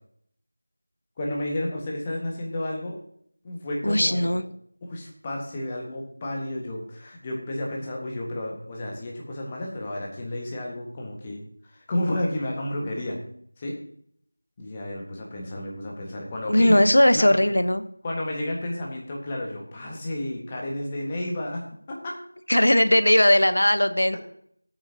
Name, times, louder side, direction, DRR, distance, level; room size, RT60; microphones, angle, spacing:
voice 1, 1.2-3.0 3.4-4.4 4.8-11.4 11.7-13.2 13.6-13.8 14.6-16.8 17.1-17.4 18.0-21.6 21.9-22.2, left 1 dB, 15° left, -1 dB, 1.7 m, -31 dB
voice 2, 3.8-4.4 16.5-17.8 22.5-24.2, left 1 dB, 65° left, 12 dB, 1.0 m, -19 dB
16.5 x 8.9 x 2.9 m, 0.64 s
figure-of-eight pair, 170°, 0 cm